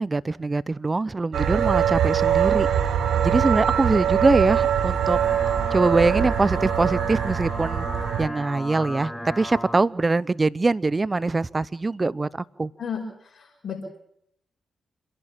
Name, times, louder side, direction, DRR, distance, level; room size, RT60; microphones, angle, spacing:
voice 1, 0.0-2.7 3.2-5.2 5.7-7.9 8.2-12.3 12.6-12.7, right 3 dB, 35° right, 20 dB, 0.7 m, -23 dB
sound 1, 1.3-8.3, right 9 dB, 70° right, 1.2 m, -23 dB
sound 2, 4.9-9.8, equal, 5° left, 3.6 m, -35 dB
voice 2, 12.8-13.9, left 6 dB, 60° left, -1 dB, 5.9 m, -33 dB
28.0 x 11.5 x 8.8 m, 0.73 s
hypercardioid pair, 40°, 0 cm